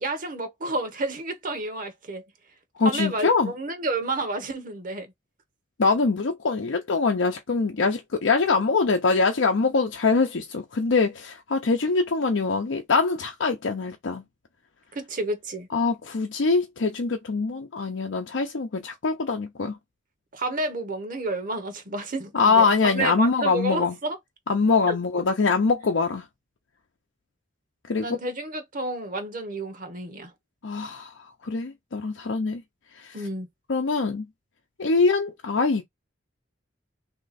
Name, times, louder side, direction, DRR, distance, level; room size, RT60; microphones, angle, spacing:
voice 1, 0.0-2.2 2.8-5.1 14.9-15.7 20.3-24.2 24.8-25.0 28.0-30.3 33.1-33.5, right 2 dB, 45° right, 0.9 m, -30 dB
voice 2, 2.8-3.5 5.8-14.2 15.7-19.8 22.3-23.9 24.5-26.2 27.9-28.2 30.6-31.1 31.4-32.6 33.0-33.2 33.7-34.2 34.8-35.8, left 4 dB, 80° left, 0.6 m, -23 dB
3.2 x 2.8 x 4.1 m
head